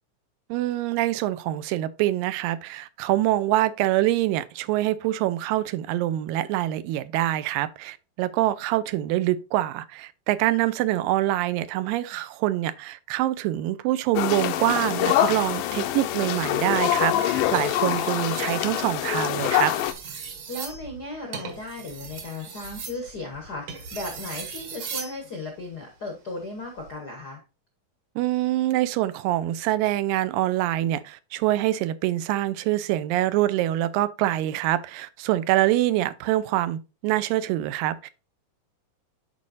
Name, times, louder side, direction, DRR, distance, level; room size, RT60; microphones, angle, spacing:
voice 1, 0.5-19.7 28.2-38.1, right 15 dB, 85° right, 2.3 m, -25 dB
sound 1, 14.2-19.9, left 12 dB, 85° left, 2.2 m, -25 dB
sound 2, 17.4-18.6 19.3-25.2 26.6-26.9, right 6 dB, 55° right, 1.8 m, -38 dB
voice 2, 20.5-27.4, left 2 dB, 65° left, 0.9 m, -36 dB
11.0 x 4.3 x 2.6 m
omnidirectional pair, 3.9 m